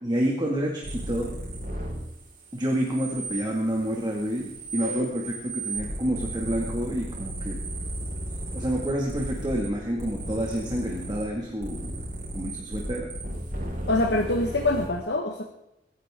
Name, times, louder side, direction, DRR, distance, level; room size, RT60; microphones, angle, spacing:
voice 1, 0.0-1.3 2.5-7.6 8.5-12.0 12.3-13.1, equal, 25° right, -1 dB, 2.2 m, -28 dB
sound 1, 0.8-2.1 2.4-9.7 10.0-11.3 11.6-14.9, right 1 dB, 50° right, 4.9 m, -35 dB
voice 2, 13.9-15.4, left 2 dB, 70° left, 2 dB, 1.5 m, -25 dB
22.5 x 11.0 x 3.7 m, 0.86 s
head